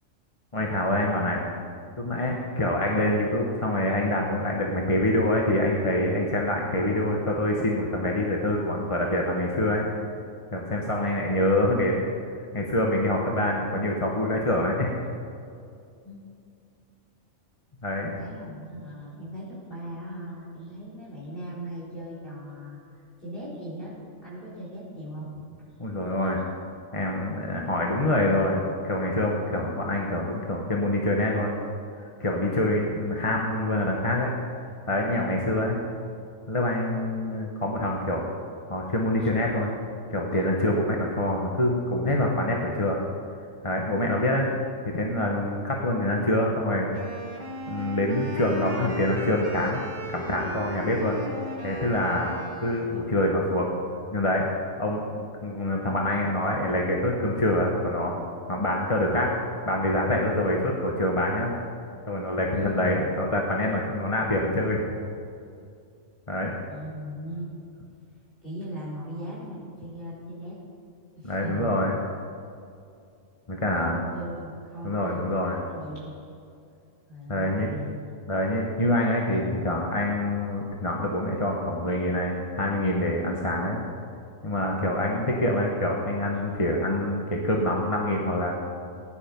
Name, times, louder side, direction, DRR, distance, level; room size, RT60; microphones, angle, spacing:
voice 1, 0.5-1.4 2.0-9.9 10.5-12.0 12.5-14.9 17.8-18.1 25.8-26.4 26.9-31.6 32.0-34.3 34.6-35.8 36.5-38.2 38.7-39.7 40.1-43.0 43.6-44.5 44.9-46.9 47.7-49.8 50.1-51.2 51.6-53.7 54.1-54.5 54.8-58.1 58.5-59.3 59.6-61.5 62.1-64.8 66.3-66.6 71.2-72.0 73.5-74.0 74.8-75.6 77.3-77.7 78.3-83.8 84.4-88.6, left 1 dB, 25° left, -1 dB, 1.2 m, -26 dB
voice 2, 18.0-22.8 23.2-24.0 24.2-25.4 62.5-63.1 66.7-67.5 68.4-70.6 71.2-71.8 73.6-76.1 77.1-77.9 84.8-85.2, equal, 45° left, -9 dB, 4.2 m, -38 dB
Wind instrument woodwind instrument, 46.9-53.1, right 1 dB, 35° right, 1.8 m, -37 dB
16.5 x 10.5 x 5.3 m, 2.4 s
omnidirectional pair, 1.4 m